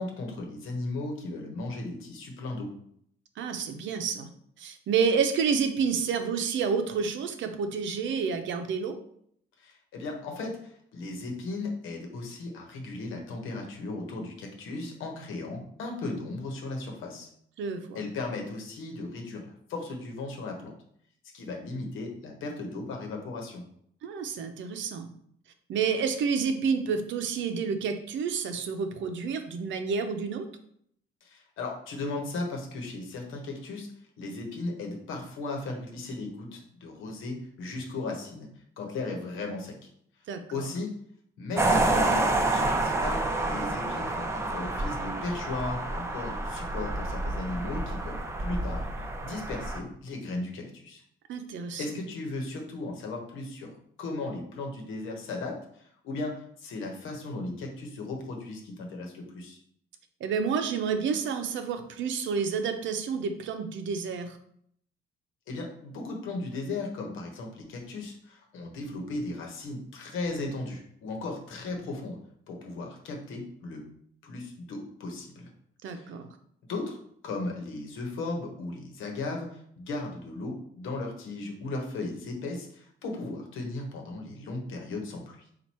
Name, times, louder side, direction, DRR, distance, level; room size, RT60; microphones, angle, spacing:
voice 1, 0.0-2.7 9.6-17.3 17.9-19.4 19.7-20.7 21.3-23.6 31.2-33.9 34.2-38.5 38.8-39.9 40.5-40.9 41.4-48.9 49.2-51.0 51.8-53.7 54.0-55.6 56.0-59.6 65.5-72.2 72.5-73.8 74.2-75.5 75.9-76.0 76.7-77.0 77.2-85.4, left 2 dB, 85° left, 2 dB, 1.1 m, -36 dB
voice 2, 3.4-4.3 4.6-9.0 17.6-18.0 24.0-25.1 25.7-30.5 40.3-40.4 51.3-51.8 60.2-64.4 75.8-76.3, right 6 dB, 75° right, 7 dB, 0.6 m, -29 dB
sound 1, 41.6-49.8, right 2 dB, 15° right, 0.6 m, -28 dB
4.5 x 2.5 x 4.2 m, 0.68 s
cardioid pair, 90°, 20 cm